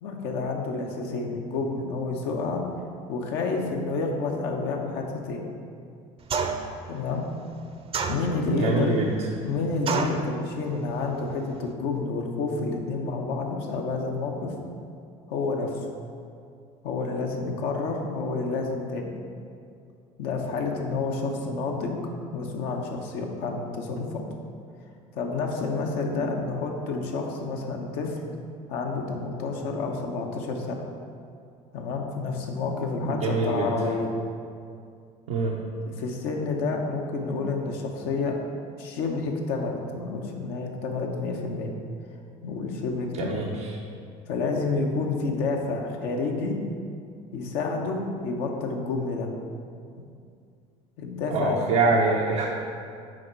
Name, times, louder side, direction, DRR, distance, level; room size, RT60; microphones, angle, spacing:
voice 1, 0.0-2.6 3.1-5.4 6.9-7.3 8.1-8.9 9.4-14.5 15.3-15.9 16.8-19.1 20.2-22.0 22.3-24.2 25.1-28.2 28.7-30.8 31.7-34.1 36.0-38.4 38.8-41.7 42.4-43.4 44.3-46.6 47.3-49.3 51.0-51.6, left 3 dB, 70° left, 1 dB, 0.9 m, -29 dB
sound 1, 6.3-6.8 7.9-8.6 9.9-10.3, right 5 dB, 35° right, 0.6 m, -28 dB
voice 2, 8.5-9.1 33.0-33.7 35.3-35.5 43.2-43.5 51.3-52.5, right 3 dB, 80° right, -3 dB, 0.7 m, -24 dB
6.4 x 4.4 x 4.4 m, 2.4 s
hypercardioid pair, 75°, 17 cm